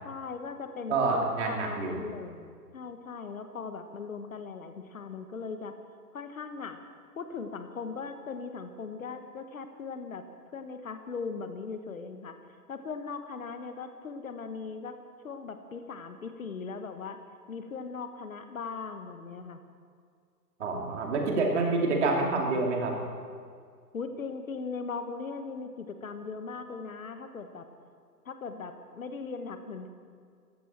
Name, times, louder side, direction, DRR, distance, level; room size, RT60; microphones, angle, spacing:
voice 1, 0.0-1.0 1.5-5.7 6.1-6.8 7.2-10.2 10.5-12.3 12.7-15.0 15.2-17.2 17.5-19.6 23.9-27.6 28.2-29.9, left 5 dB, 55° left, 8 dB, 1.4 m, -39 dB
voice 2, 0.9-2.0 20.6-22.9, right 3 dB, 45° right, 0 dB, 2.8 m, -27 dB
20.5 x 15.0 x 4.4 m, 2.1 s
figure-of-eight pair, 135°, 49 cm